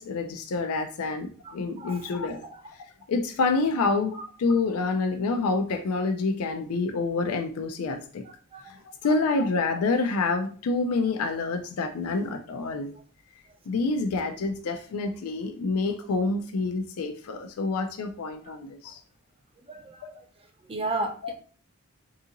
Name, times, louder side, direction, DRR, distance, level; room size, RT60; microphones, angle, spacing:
voice 1, 0.0-2.5 3.1-8.2 8.6-12.9 13.7-19.0 20.0-20.2 21.2-21.3, left 3 dB, 90° left, 5 dB, 0.4 m, -27 dB
voice 2, 1.4-2.1 8.5-8.7 9.0-9.1 19.7-20.0 20.7-21.1, right 2 dB, 25° right, 4 dB, 0.5 m, -33 dB
3.9 x 2.7 x 2.5 m, 0.42 s
head